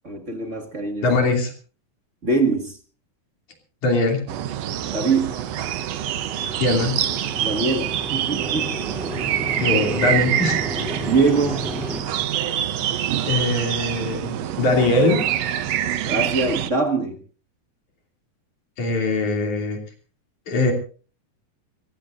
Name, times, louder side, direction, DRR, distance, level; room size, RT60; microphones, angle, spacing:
voice 1, 0.0-1.0 2.2-2.8 4.8-5.3 7.4-8.7 10.9-11.6 16.1-17.2, right 3 dB, 30° right, 4 dB, 1.3 m, -23 dB
voice 2, 1.0-1.5 3.8-4.2 6.6-6.9 9.6-10.6 12.3-12.4 13.2-15.2 18.8-19.8 20.5-20.7, left 2 dB, 55° left, 3 dB, 4.2 m, -21 dB
sound 1, 4.3-16.7, right 11 dB, 80° right, 1.4 m, -26 dB
sound 2, 5.0-12.0, equal, ahead, 2.6 m, -34 dB
25.5 x 16.0 x 2.6 m, 0.38 s
omnidirectional pair, 4.2 m